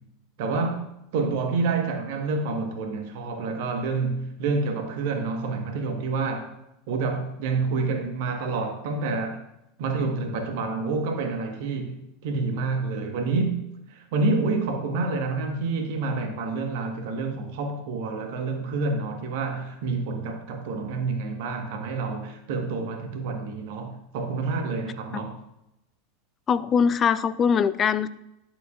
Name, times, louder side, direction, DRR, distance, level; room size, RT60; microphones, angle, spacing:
voice 1, 0.4-0.8 1.1-6.5 6.9-9.4 9.8-13.6 14.1-25.4, right 3 dB, 60° right, 1.3 m, -28 dB
voice 2, 26.5-28.1, left 6 dB, 30° left, 0.4 m, -22 dB
11.0 x 7.1 x 2.5 m
figure-of-eight pair, 85°, 0 cm